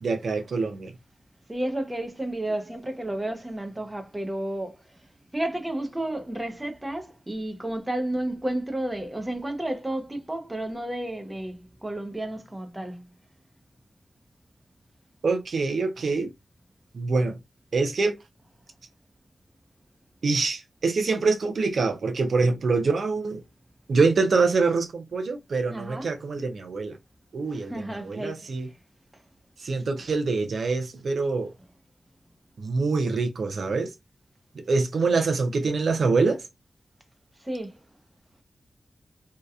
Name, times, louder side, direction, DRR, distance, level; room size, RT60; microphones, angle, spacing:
voice 1, 0.0-0.9 15.2-16.3 16.9-17.4 17.7-18.2 20.2-23.4 23.9-27.0 27.3-28.7 29.6-31.5 32.6-33.9 34.6-36.4, right 4 dB, 70° right, 0.4 m, -25 dB
voice 2, 1.5-4.8 5.3-13.0 25.7-26.1 27.5-28.5 37.4-37.7, right 1 dB, 15° right, 0.5 m, -31 dB
2.7 x 2.2 x 2.3 m
wide cardioid pair, 120°, 0 cm